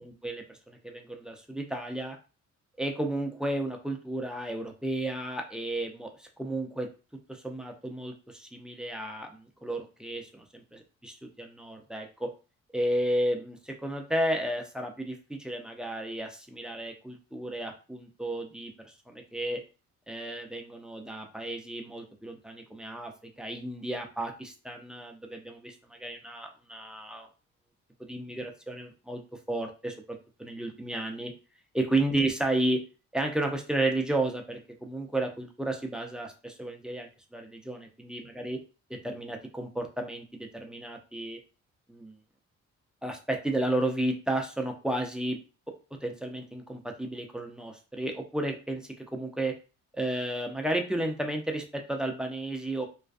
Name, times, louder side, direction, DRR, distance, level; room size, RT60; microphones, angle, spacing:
voice 1, 0.0-2.2 2.8-6.9 7.3-10.4 11.0-12.3 12.7-19.6 20.1-23.1 23.4-27.3 28.1-29.2 29.5-31.3 31.7-32.8 33.1-38.6 38.9-41.4 41.9-42.2 43.0-45.4 46.0-49.6 49.9-52.9, right 1 dB, 5° right, 3 dB, 0.4 m, -33 dB
2.4 x 2.2 x 2.4 m, 0.33 s
cardioid pair, 90°, 30 cm